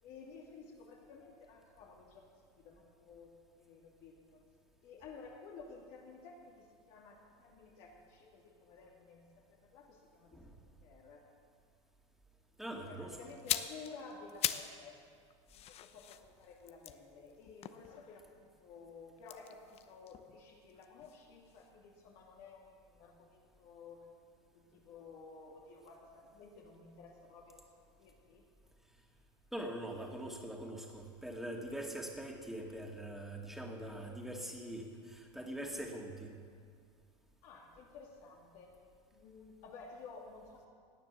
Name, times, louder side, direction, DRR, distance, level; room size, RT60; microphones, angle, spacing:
voice 1, 0.0-4.4 4.8-11.2 12.8-15.0 15.5-24.1 24.5-27.6 28.0-28.4 37.4-38.7 39.1-40.7, left 4 dB, 65° left, -2 dB, 2.7 m, -54 dB
voice 2, 12.6-13.2 29.5-36.3, right 1 dB, ahead, 1 dB, 2.4 m, -43 dB
sound 1, 13.3-14.8 15.1-18.4 19.2-21.2 21.5-21.7, left 11 dB, 45° left, 0.8 m, -41 dB
18.0 x 9.5 x 6.9 m, 2.1 s
supercardioid pair, 110°, 15 cm